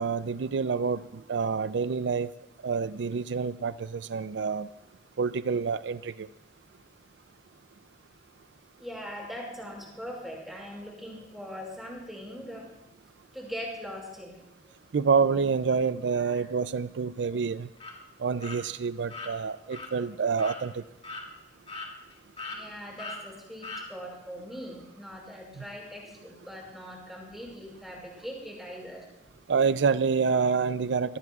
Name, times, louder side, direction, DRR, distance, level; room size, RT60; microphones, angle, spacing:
voice 1, 0.0-2.3 2.6-4.7 5.2-6.3 14.9-17.7 18.2-20.8 29.5-31.2, right 5 dB, 80° right, 0.4 m, -27 dB
voice 2, 8.8-12.7 13.3-14.4 14.7-14.8 16.2-16.4 22.5-29.1, equal, ahead, 5.7 m, -41 dB
sound 1, 17.8-17.9 18.4-18.6 19.1-19.3 19.7-19.9 20.4-20.6 21.0-21.2 21.7-22.1 22.4-22.6 23.0-23.2 23.6-23.8, left 3 dB, 35° left, 2.4 m, -39 dB
25.5 x 18.5 x 2.4 m
head